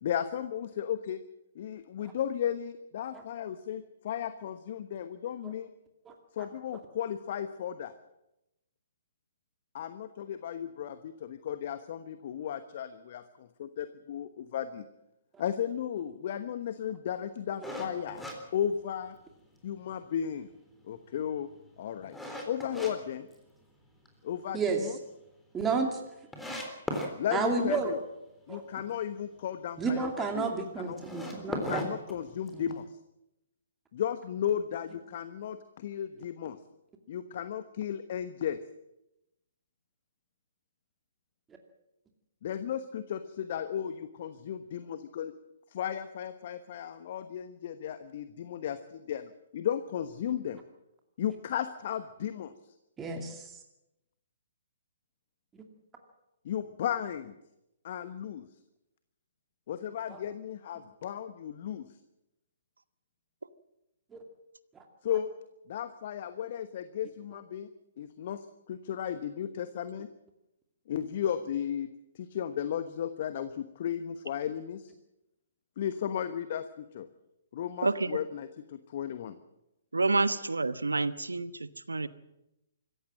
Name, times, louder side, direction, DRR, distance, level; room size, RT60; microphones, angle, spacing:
voice 1, 0.0-1.2 1.5-5.7 6.3-7.9 9.7-14.8 15.4-18.2 18.5-19.1 19.6-20.5 20.8-21.5 21.8-22.1 22.4-23.3 24.2-25.0 27.2-28.0 28.5-31.0 31.5-33.0 33.9-36.6 37.1-38.6 42.4-45.3 45.7-50.6 51.2-52.5 56.4-57.3 57.8-58.5 59.7-62.0 65.0-65.3 65.7-67.7 68.0-70.1 70.9-74.9 75.8-77.1 77.5-79.3, left 9 dB, 45° left, 11 dB, 1.1 m, -35 dB
sound 1, 17.6-19.3 19.8-19.9 20.4-22.9 23.3-24.1 24.4-24.5 24.9-25.0 25.1-25.2 25.9-26.0 26.3-27.1 30.9-32.7, left 1 dB, 5° left, 3.6 m, -37 dB
voice 2, 25.5-26.0 27.3-27.9 28.5-28.6 29.8-31.8 32.5-32.6 53.0-53.4 60.1-60.2 64.1-64.2, right 4 dB, 15° right, 3 dB, 2.5 m, -31 dB
voice 3, 77.8-78.2 79.9-82.1, right 3 dB, 80° right, 15 dB, 1.1 m, -28 dB
25.5 x 15.0 x 7.5 m, 0.90 s
figure-of-eight pair, 125°, 0 cm